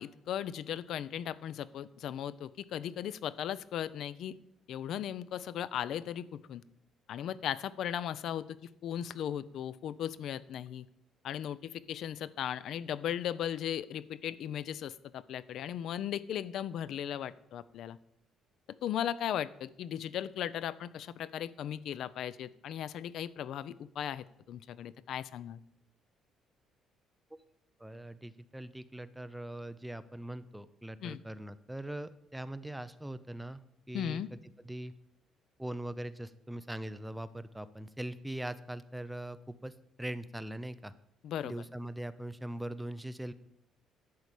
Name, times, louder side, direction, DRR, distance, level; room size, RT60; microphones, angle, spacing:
voice 1, 0.0-4.3 4.7-6.6 7.1-8.6 8.8-10.8 11.2-18.0 18.8-25.6 31.0-31.2 33.9-34.3 41.2-41.5, left 10 dB, 60° left, 17 dB, 0.4 m, -37 dB
voice 2, 27.8-34.4 34.6-34.9 35.6-39.7 40.0-40.9 41.4-43.3, right 1 dB, 5° right, 13 dB, 0.4 m, -41 dB
11.0 x 4.8 x 8.2 m, 0.79 s
cardioid pair, 155°, 0 cm